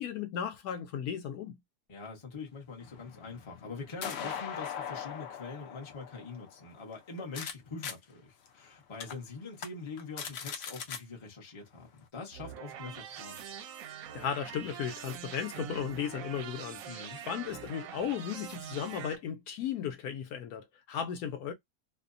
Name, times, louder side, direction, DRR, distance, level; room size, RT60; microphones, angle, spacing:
voice 1, 0.0-1.6 14.1-21.5, left 8 dB, 75° left, 1.0 m, -36 dB
voice 2, 1.9-13.4 16.9-17.2, left 4 dB, 30° left, 0.6 m, -44 dB
sound 1, 2.8-7.5 7.8-7.9 8.5-8.6 9.0-9.1 9.5-9.7 10.0-11.0, left 7 dB, 90° left, 0.5 m, -40 dB
sound 2, 12.3-19.1, right 8 dB, 70° right, 0.8 m, -44 dB
2.7 x 2.1 x 2.4 m
omnidirectional pair, 1.8 m